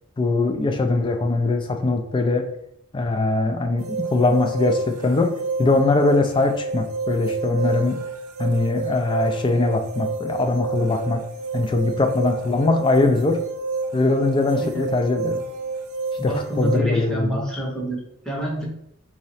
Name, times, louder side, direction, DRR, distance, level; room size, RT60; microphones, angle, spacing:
voice 1, 0.2-2.5 2.9-5.3 5.6-8.0 8.4-11.2 11.5-13.4 13.9-15.4 16.2-17.4, left 2 dB, 20° left, 5 dB, 0.3 m, -21 dB
sound 1, 3.8-16.8, right 3 dB, 75° right, 0.4 m, -29 dB
voice 2, 14.6-14.9 16.2-18.7, right 1 dB, 5° left, -3 dB, 0.7 m, -28 dB
3.7 x 2.1 x 4.1 m, 0.71 s
head